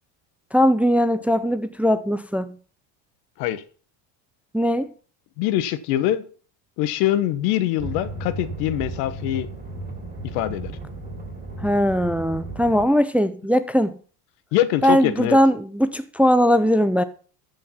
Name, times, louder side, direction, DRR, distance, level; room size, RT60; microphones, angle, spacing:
voice 1, 0.5-2.5 4.5-4.9 11.6-14.0 14.8-17.0, equal, 5° right, 0.5 m, -19 dB
voice 2, 5.4-6.2 6.8-9.5 10.2-10.7 14.5-15.4, left 13 dB, 80° left, 1.2 m, -23 dB
sound 1, 7.8-12.9, right 2 dB, 20° right, 3.8 m, -34 dB
13.0 x 5.5 x 5.6 m
supercardioid pair, 115°, 47 cm